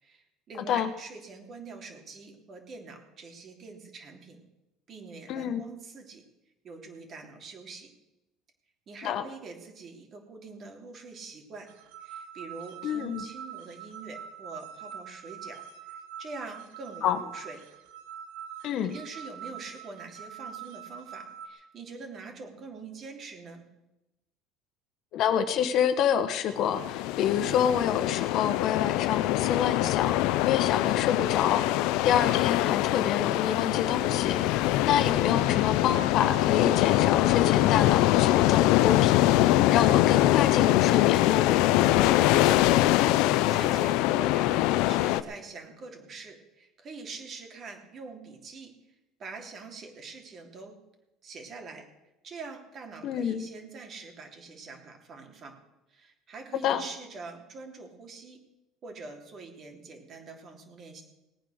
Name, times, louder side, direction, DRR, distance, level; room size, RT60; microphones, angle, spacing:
voice 1, 0.0-4.4 4.9-6.2 6.6-7.9 8.9-11.7 12.0-17.6 18.8-23.6 42.6-43.0 43.5-48.7 49.2-50.8 51.2-51.8 52.2-55.6 55.9-58.4 58.8-61.0, right 4 dB, 40° right, 3 dB, 3.2 m, -44 dB
voice 2, 5.3-5.6 9.0-9.2 12.8-13.2 17.0-17.2 18.6-18.9 25.1-41.5 53.0-53.4 56.6-56.8, left 9 dB, 55° left, 9 dB, 1.2 m, -28 dB
sound 1, 11.7-21.5, right 8 dB, 85° right, 1.5 m, -44 dB
sound 2, 26.6-45.2, left 15 dB, 75° left, 0.6 m, -23 dB
18.5 x 9.2 x 6.5 m, 0.95 s
cardioid pair, 120°, 0 cm